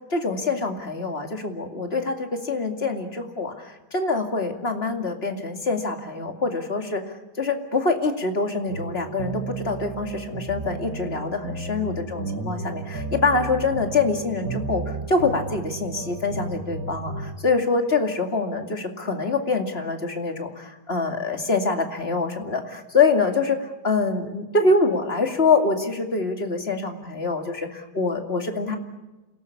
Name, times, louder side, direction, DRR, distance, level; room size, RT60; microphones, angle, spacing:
voice 1, 0.1-7.0 7.4-28.8, left 3 dB, 35° left, 4 dB, 2.6 m, -25 dB
sound 1, 8.7-17.3, right 3 dB, 60° right, 2.5 m, -33 dB
27.5 x 18.0 x 8.6 m, 1.1 s
omnidirectional pair, 1.8 m